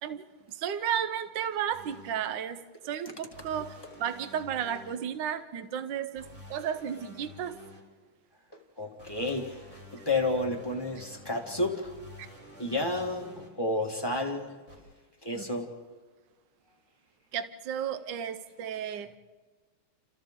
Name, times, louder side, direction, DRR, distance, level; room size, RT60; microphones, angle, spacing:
voice 1, 0.0-7.6 12.2-12.3 15.3-15.4 17.3-19.1, right 9 dB, 65° right, 11 dB, 1.4 m, -33 dB
sound 1, 1.7-2.1 3.3-5.0 6.2-7.8 9.0-13.5 14.7-14.8, equal, 35° right, 3.8 m, -49 dB
voice 2, 8.8-9.7 9.9-11.9 12.6-14.5 15.2-15.7, left 2 dB, 15° left, 1 dB, 1.5 m, -31 dB
29.5 x 28.5 x 3.7 m, 1.4 s
omnidirectional pair, 2.3 m